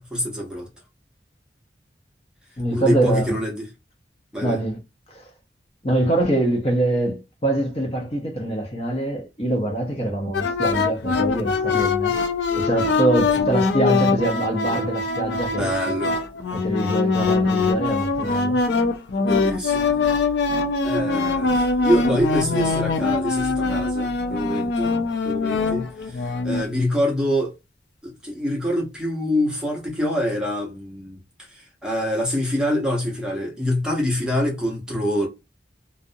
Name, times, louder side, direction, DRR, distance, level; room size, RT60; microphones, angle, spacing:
voice 1, 0.1-0.7 2.7-3.6 4.3-4.6 15.5-16.2 19.2-19.8 20.8-24.9 25.2-27.5 28.0-31.2 31.5-35.3, equal, 5° right, 0.7 m, -25 dB
voice 2, 2.6-3.4 4.4-4.8 5.1-5.3 5.8-12.1 12.5-16.0 16.5-18.6, right 1 dB, 35° left, 0.7 m, -24 dB
sound 1, 10.3-26.7, left 4 dB, 80° left, 0.4 m, -23 dB
2.3 x 2.0 x 2.6 m
head